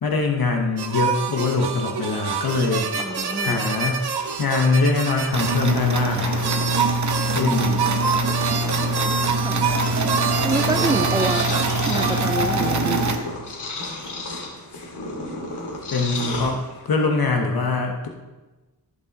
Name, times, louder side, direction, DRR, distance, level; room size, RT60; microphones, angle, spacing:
voice 1, 0.0-2.9 3.4-4.0 4.4-6.5 7.3-7.9 15.9-18.1, left 3 dB, 60° left, 3 dB, 1.1 m, -23 dB
sound 1, 0.8-5.6 6.0-6.1 6.4-12.4, right 6 dB, 70° right, 0.8 m, -27 dB
Purr, 1.9-17.0, left 2 dB, 80° left, 2.3 m, -34 dB
voice 2, 2.9-3.6 9.4-9.6 10.4-13.0, right 2 dB, 10° right, 11 dB, 0.4 m, -27 dB
sound 2, 5.3-13.2, right 2 dB, 45° right, 0.9 m, -24 dB
14.0 x 5.3 x 4.1 m, 1.1 s
wide cardioid pair, 90°, 40 cm